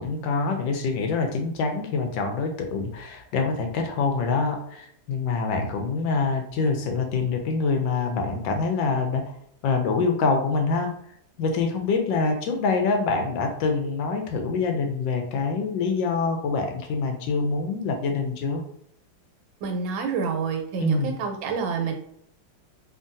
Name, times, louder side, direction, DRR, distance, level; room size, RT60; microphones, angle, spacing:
voice 1, 0.0-9.3 9.6-10.9 11.4-18.6 20.8-21.1, left 4 dB, 80° left, 4 dB, 1.3 m, -25 dB
voice 2, 19.6-21.9, right 5 dB, 90° right, 4 dB, 1.4 m, -28 dB
3.7 x 2.2 x 2.6 m, 0.69 s
omnidirectional pair, 2.1 m